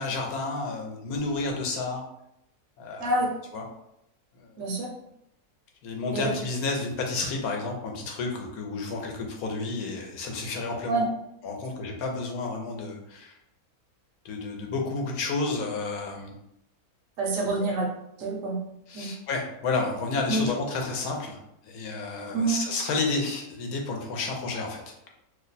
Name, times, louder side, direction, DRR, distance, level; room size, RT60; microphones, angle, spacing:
voice 1, 0.0-2.0 2.8-3.2 3.5-3.6 4.4-4.5 5.8-11.0 11.4-13.3 14.2-16.3 17.7-17.8 18.9-21.4 21.6-24.9, left 3 dB, 75° left, 2 dB, 1.1 m, -31 dB
voice 2, 4.6-4.9 6.1-6.3 10.9-11.1 17.2-17.8 18.2-18.6 18.9-19.1 20.3-20.4 22.3-22.6, right 2 dB, 70° right, 0 dB, 0.9 m, -26 dB
2.7 x 2.2 x 3.9 m, 0.78 s
omnidirectional pair, 1.6 m